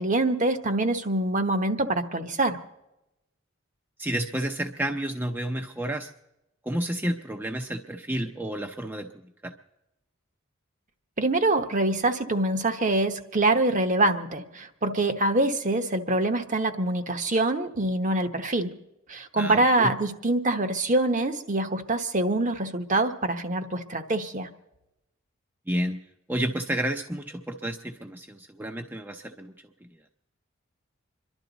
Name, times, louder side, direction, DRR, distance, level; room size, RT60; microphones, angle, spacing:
voice 1, 0.0-2.6 11.2-18.8 19.1-24.5, right 2 dB, 40° right, 8 dB, 1.0 m, -25 dB
voice 2, 4.0-6.1 6.7-9.1 9.4-9.5 19.4-19.9 25.7-26.0 26.3-29.5, right 1 dB, 10° right, 4 dB, 0.6 m, -30 dB
27.0 x 12.0 x 4.0 m, 0.92 s
head